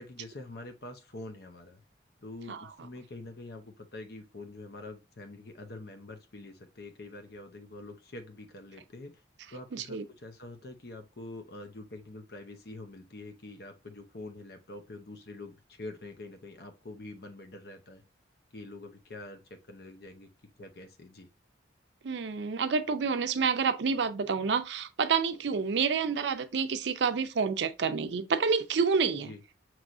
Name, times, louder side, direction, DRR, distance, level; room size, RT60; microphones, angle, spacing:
voice 1, 0.0-1.8 2.2-9.2 9.5-18.0 18.5-20.3 20.6-21.3 29.2-29.4, left 2 dB, 55° left, 0.7 m, -45 dB
voice 2, 9.7-10.0 22.0-29.3, right 5 dB, 70° right, 0.5 m, -28 dB
6.0 x 3.1 x 2.5 m
head